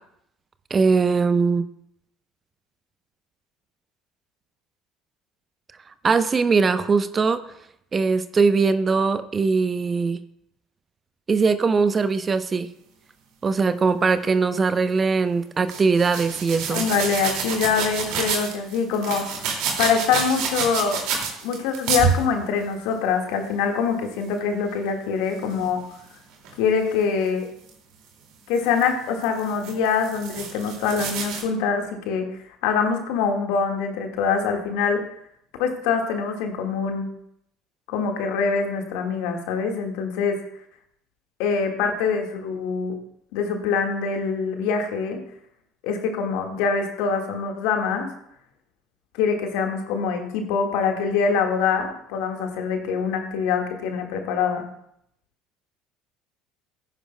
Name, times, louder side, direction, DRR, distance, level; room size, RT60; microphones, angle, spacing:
voice 1, 0.7-1.7 6.0-7.4 7.9-10.2 11.3-12.7 13.4-16.9, right 4 dB, 30° right, 11 dB, 0.7 m, -21 dB
sound 1, 15.7-22.3 25.5-25.7 26.4-26.5 27.7-27.8 28.5-28.9 29.2-31.4, right 6 dB, 65° right, 2.3 m, -28 dB
voice 2, 16.7-19.5 19.8-21.0 21.4-25.8 26.6-27.5 28.5-32.3 32.6-35.0 35.6-37.1 37.9-40.4 41.4-42.9 43.3-45.2 45.8-48.1 49.1-54.7, left 6 dB, 65° left, 3 dB, 1.7 m, -24 dB
15.5 x 10.0 x 2.2 m, 0.74 s
hypercardioid pair, 65°, 0 cm